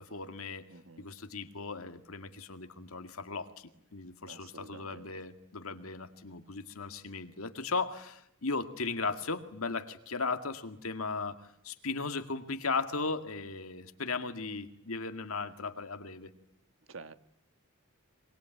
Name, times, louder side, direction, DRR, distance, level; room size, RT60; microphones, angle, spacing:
voice 1, 0.0-0.7 1.0-16.3, left 4 dB, 85° left, 9 dB, 2.1 m, -37 dB
voice 2, 0.7-1.1 4.3-5.1 16.9-17.1, right 4 dB, 65° right, 12 dB, 1.5 m, -49 dB
25.0 x 23.5 x 9.3 m, 0.77 s
head